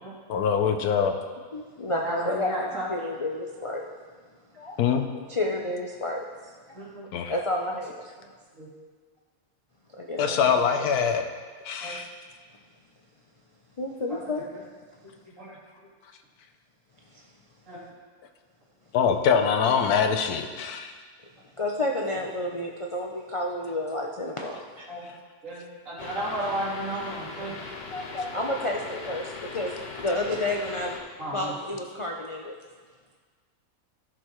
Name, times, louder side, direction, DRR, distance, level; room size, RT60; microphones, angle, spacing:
voice 1, 0.3-1.2 4.8-5.1 7.1-7.3 10.2-11.2 11.6-12.1 18.9-20.9, left 6 dB, 80° left, 6 dB, 1.2 m, -23 dB
voice 2, 1.5-2.5 2.9-3.8 4.6-4.8 5.3-6.5 7.3-8.0 10.0-10.4 11.9-12.1 13.8-14.4 17.1-17.2 21.6-24.9 27.5-27.6 27.9-30.9 31.3-32.5, left 1 dB, 55° left, -1 dB, 0.3 m, -30 dB
voice 3, 2.0-2.9 6.7-7.3 8.5-8.7 10.3-10.6 11.8-12.0 14.1-14.2 15.0-15.6 17.7-17.8 24.9-25.1 25.4-27.6 31.2-31.5, right 1 dB, 60° right, -8 dB, 3.0 m, -34 dB
sound 1, 26.0-31.0, left 4 dB, 40° left, 0.8 m, -39 dB
14.0 x 6.5 x 3.1 m, 1.5 s
omnidirectional pair, 1.6 m